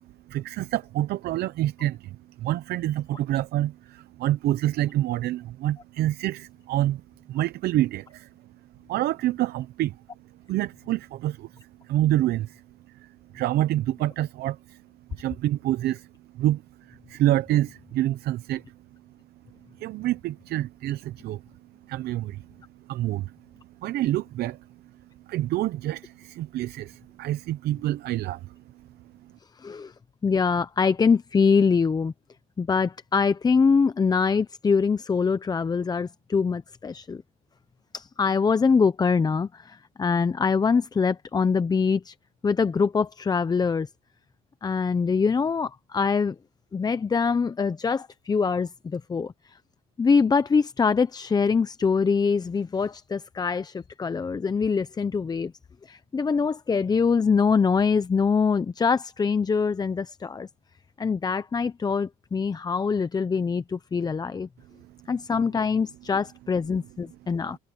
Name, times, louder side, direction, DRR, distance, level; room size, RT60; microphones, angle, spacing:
voice 1, 0.3-8.3 8.9-10.0 10.5-12.6 12.9-14.8 15.1-16.1 16.3-18.6 19.8-21.4 21.9-22.5 22.9-23.4 23.8-24.6 25.3-28.6 29.2-29.3 64.8-65.0, right 14 dB, 70° right, 0.7 m, -27 dB
voice 2, 29.6-29.9 30.2-32.1 32.6-37.2 37.9-42.1 42.4-43.9 44.6-46.4 46.7-49.6 50.0-55.5 55.8-60.5 61.0-64.5 65.1-67.6, left 5 dB, 25° left, 0.7 m, -24 dB
cardioid pair, 110°, 17 cm